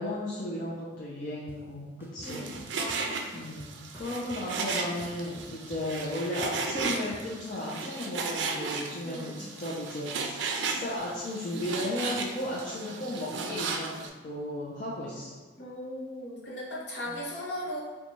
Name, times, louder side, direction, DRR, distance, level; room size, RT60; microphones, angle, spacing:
voice 1, 0.0-2.5 3.3-15.3 17.1-17.2, left 1 dB, 50° left, -7 dB, 0.5 m, -35 dB
sound 1, 1.5-1.6 2.0-3.0 3.4-4.5 4.8-7.2, right 1 dB, 10° right, 0.3 m, -50 dB
voice 2, 2.2-3.2 3.9-4.1 4.6-4.8 9.0-9.4 15.6-17.8, left 1 dB, 70° left, -5 dB, 1.0 m, -38 dB
Frying (food), 2.2-14.1, right 4 dB, 90° right, 0.4 m, -35 dB
3.9 x 2.2 x 3.0 m, 1.3 s
head